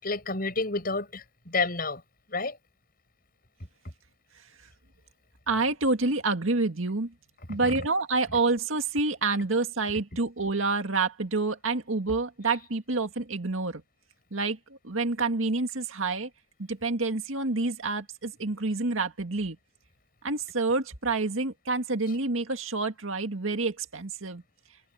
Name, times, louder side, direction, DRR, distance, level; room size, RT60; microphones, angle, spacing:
voice 1, 0.0-2.0 2.3-2.6 7.5-7.9, left 3 dB, 45° left, 6.7 m, -30 dB
voice 2, 5.5-7.1 7.5-13.8 14.3-14.6 14.8-16.3 16.7-19.6 20.2-24.4, right 3 dB, 85° right, 2.0 m, -28 dB
head